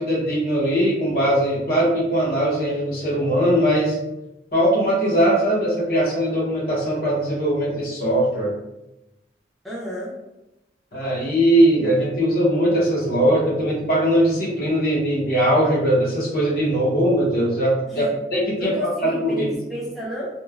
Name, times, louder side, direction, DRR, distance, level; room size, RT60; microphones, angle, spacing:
voice 1, 0.0-4.0 4.5-8.5 10.9-18.1 18.3-18.7 19.2-19.5, right 1 dB, 55° left, -5 dB, 0.8 m, -20 dB
voice 2, 9.6-10.1 17.9-18.1 18.6-20.3, left 1 dB, ahead, -8 dB, 0.5 m, -31 dB
2.9 x 2.1 x 2.3 m, 0.97 s
head